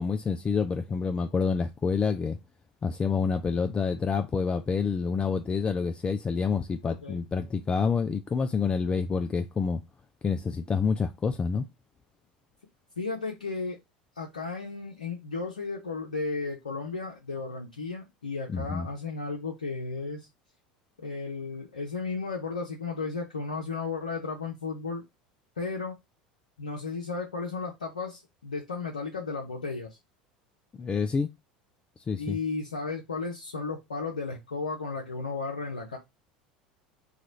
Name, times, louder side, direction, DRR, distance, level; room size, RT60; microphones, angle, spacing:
voice 1, 0.0-2.4 2.8-9.8 10.2-11.6 18.5-18.9 30.8-31.3 32.1-32.4, left 5 dB, 25° left, 0.3 m, -28 dB
voice 2, 6.8-7.3 13.0-13.8 14.2-20.3 21.0-25.0 25.6-25.9 26.6-30.0 32.2-36.0, left 4 dB, 90° left, 0.6 m, -34 dB
3.0 x 2.4 x 3.9 m
hypercardioid pair, 75°, 4 cm